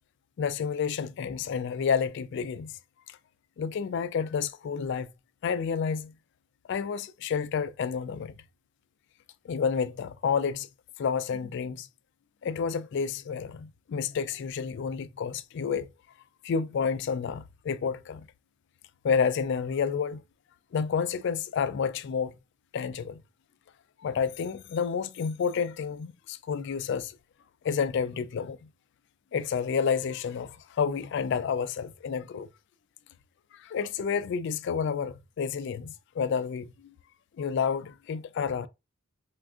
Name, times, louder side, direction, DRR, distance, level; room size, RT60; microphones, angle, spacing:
voice 1, 0.4-2.7 3.1-3.2 3.6-5.1 5.4-6.1 6.7-8.4 9.4-10.7 11.0-11.9 12.4-15.9 16.4-18.3 19.0-20.2 20.7-22.3 22.7-23.2 24.0-27.2 27.6-28.6 29.3-32.5 33.5-36.9 37.4-38.7, left 6 dB, 55° left, 0.3 m, -30 dB
4.5 x 2.4 x 2.4 m
head